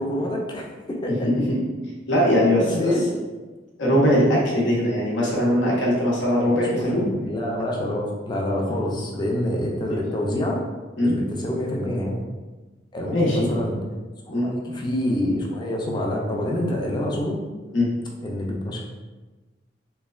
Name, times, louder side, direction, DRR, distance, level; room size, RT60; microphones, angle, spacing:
voice 1, 0.0-1.2 2.6-3.0 6.5-10.6 11.0-12.2 12.9-13.8 14.3-17.4 18.2-18.8, left 1 dB, 25° left, -1 dB, 0.4 m, -27 dB
voice 2, 1.2-1.6 2.1-2.9 3.8-7.0 9.9-10.0 11.0-11.2 13.1-13.5 14.3-14.5 17.7-17.9, equal, 85° left, -4 dB, 0.8 m, -20 dB
3.1 x 2.1 x 2.3 m, 1.3 s
head